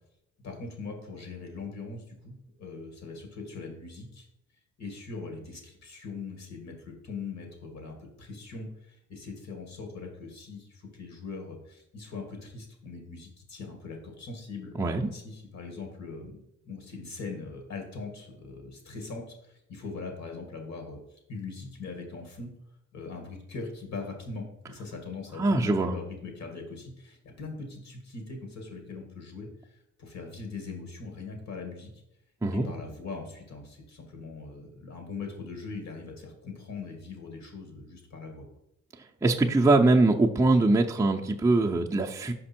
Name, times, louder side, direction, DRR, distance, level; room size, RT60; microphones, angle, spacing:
voice 1, 0.4-4.3 4.8-14.7 15.1-21.0 21.3-22.5 22.9-31.9 32.5-38.4, left 4 dB, 65° left, 3 dB, 1.9 m, -41 dB
voice 2, 14.8-15.1 25.4-25.9 32.4-32.7 39.2-42.3, right 2 dB, 10° right, -1 dB, 0.5 m, -22 dB
5.3 x 5.2 x 4.3 m, 0.81 s
cardioid pair, 90°, 30 cm